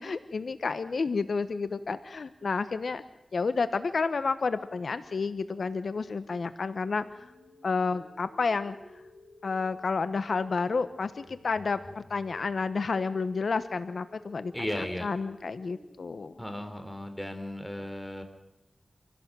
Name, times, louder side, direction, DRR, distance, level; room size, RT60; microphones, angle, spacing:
voice 1, 0.0-3.0 3.3-7.3 7.6-8.8 9.4-16.3, left 4 dB, 75° left, 12 dB, 1.0 m, -30 dB
sound 1, 6.9-16.9, left 2 dB, 35° left, 6.6 m, -55 dB
voice 2, 14.5-15.1 16.4-18.2, left 1 dB, 5° left, 6 dB, 3.6 m, -35 dB
27.0 x 16.5 x 7.6 m, 0.94 s
wide cardioid pair, 80°, 0 cm